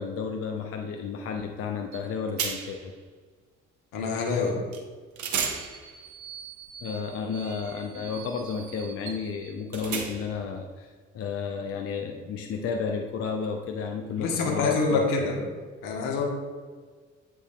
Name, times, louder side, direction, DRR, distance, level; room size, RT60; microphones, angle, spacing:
voice 1, 0.0-2.9 6.8-15.3, left 5 dB, 40° left, 3 dB, 0.6 m, -32 dB
sound 1, 1.9-2.1 2.4-2.9 4.7-4.8 5.2-10.5, right 6 dB, 50° right, 0.9 m, -36 dB
voice 2, 3.9-4.6 14.2-15.4 15.8-16.2, left 4 dB, 65° left, 0 dB, 1.3 m, -26 dB
7.9 x 6.0 x 2.3 m, 1.5 s
figure-of-eight pair, 45°, 36 cm